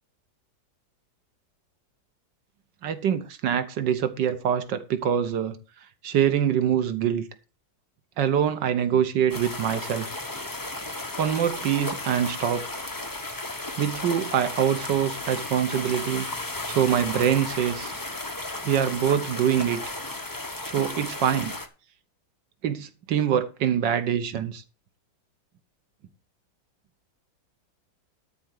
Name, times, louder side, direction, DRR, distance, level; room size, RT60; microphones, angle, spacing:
voice 1, 2.8-5.6 6.0-7.3 8.2-10.1 11.2-12.7 13.8-16.3 16.7-17.9 18.6-19.8 20.6-21.5 22.6-24.6, right 9 dB, 70° right, 1.6 m, -24 dB
sound 1, 9.3-21.7, left 2 dB, 15° left, 0.8 m, -34 dB
13.0 x 4.3 x 7.7 m
omnidirectional pair, 2.1 m